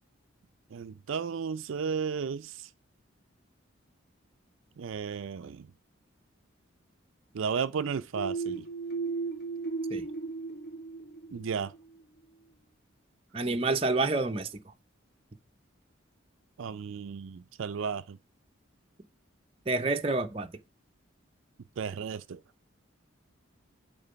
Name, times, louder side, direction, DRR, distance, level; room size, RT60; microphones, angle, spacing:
voice 1, 0.7-2.7 4.8-5.7 7.3-8.7 11.3-11.7 16.6-18.2 21.8-22.4, right 6 dB, 75° right, 0.4 m, -34 dB
sound 1, 8.1-11.8, right 4 dB, 50° left, 1.2 m, -35 dB
voice 2, 13.3-14.5 19.7-20.5, right 3 dB, 30° right, 0.6 m, -28 dB
8.9 x 3.8 x 5.6 m
head